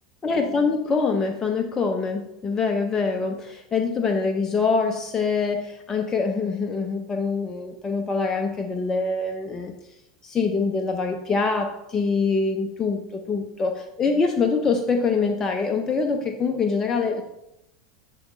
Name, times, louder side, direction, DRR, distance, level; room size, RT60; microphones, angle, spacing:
voice 1, 0.2-9.7 10.2-17.2, left 4 dB, 25° left, 4 dB, 0.6 m, -24 dB
7.8 x 3.0 x 4.2 m, 0.86 s
figure-of-eight pair, 80°, 3 cm